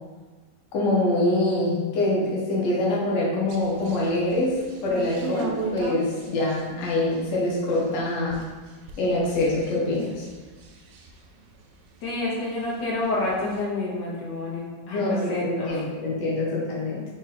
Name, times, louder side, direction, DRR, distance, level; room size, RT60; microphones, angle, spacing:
voice 1, 0.7-8.5 9.0-10.2 14.9-17.1, left 2 dB, 50° left, -5 dB, 1.1 m, -25 dB
sound 1, 3.5-12.3 12.6-13.6, right 4 dB, 80° right, 1.2 m, -38 dB
voice 2, 12.0-15.8, left 2 dB, 75° left, -5 dB, 1.6 m, -28 dB
3.7 x 2.7 x 4.0 m, 1.3 s
omnidirectional pair, 1.9 m